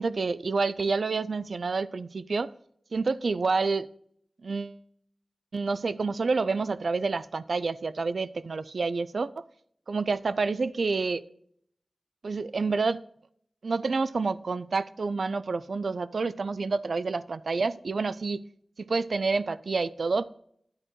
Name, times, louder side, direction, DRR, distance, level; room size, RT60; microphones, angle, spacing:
voice 1, 0.0-2.5 2.9-3.9 4.4-4.8 5.5-9.4 9.9-11.2 12.2-13.0 13.6-18.4 18.8-20.3, right 4 dB, 85° right, 17 dB, 0.3 m, -28 dB
9.9 x 9.6 x 3.2 m, 0.67 s
wide cardioid pair, 65°, 0 cm